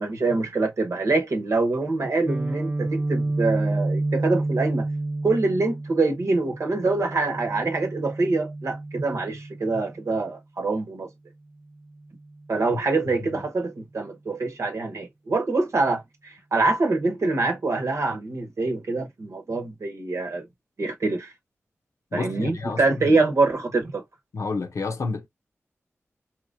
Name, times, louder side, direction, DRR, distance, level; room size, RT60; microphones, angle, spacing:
voice 1, 0.0-4.9 5.2-11.1 12.5-20.4 20.8-21.3 22.1-24.0, right 3 dB, 70° right, 1.1 m, -25 dB
Guitar, 2.3-10.1, right 2 dB, 20° right, 0.4 m, -29 dB
voice 2, 13.1-13.4 22.1-23.2 24.3-25.3, left 4 dB, 75° left, 0.7 m, -30 dB
3.8 x 2.9 x 2.6 m
cardioid pair, 50°, 5 cm